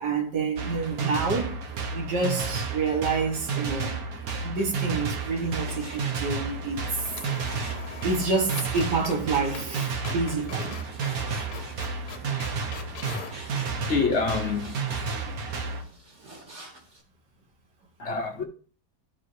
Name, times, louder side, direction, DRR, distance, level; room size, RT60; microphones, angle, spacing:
voice 1, 0.0-1.6 1.9-4.0 4.4-7.1 8.0-10.8, right 4 dB, 85° right, 1.9 m, -28 dB
sound 1, 0.6-15.8, right 4 dB, 65° right, 1.5 m, -32 dB
sound 2, 3.9-4.5 4.8-4.9 6.4-6.6 6.8-13.4, left 7 dB, 75° left, 1.3 m, -43 dB
Frying (food), 5.1-17.0, right 2 dB, 45° right, 2.3 m, -47 dB
voice 2, 13.9-14.7 15.0-15.6 18.0-18.4, left 4 dB, 50° left, 1.0 m, -27 dB
14.0 x 4.8 x 2.7 m
omnidirectional pair, 1.7 m